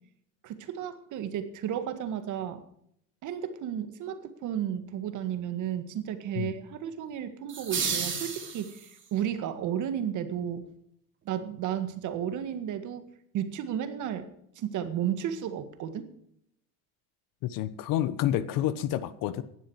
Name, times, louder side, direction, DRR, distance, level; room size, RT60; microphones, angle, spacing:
voice 1, 0.4-2.6 3.2-10.7 11.3-13.0 13.3-14.3 14.6-16.1, right 9 dB, 50° right, 10 dB, 1.9 m, -33 dB
sound 1, 7.5-9.1, right 6 dB, 30° right, 4.3 m, -32 dB
voice 2, 17.4-19.4, left 12 dB, 60° left, 15 dB, 1.2 m, -29 dB
15.5 x 11.5 x 4.8 m, 0.72 s
supercardioid pair, 110°, 37 cm